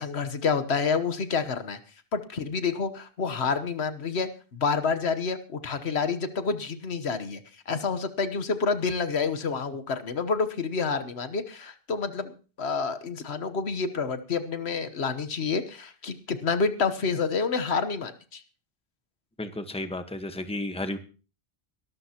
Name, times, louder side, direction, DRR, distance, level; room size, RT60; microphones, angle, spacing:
voice 1, 0.0-1.8 2.1-7.4 7.7-18.4, left 5 dB, 75° left, 10 dB, 1.4 m, -28 dB
voice 2, 19.4-21.0, left 1 dB, 5° left, 8 dB, 1.1 m, -33 dB
22.0 x 12.5 x 2.9 m, 0.36 s
omnidirectional pair, 1.1 m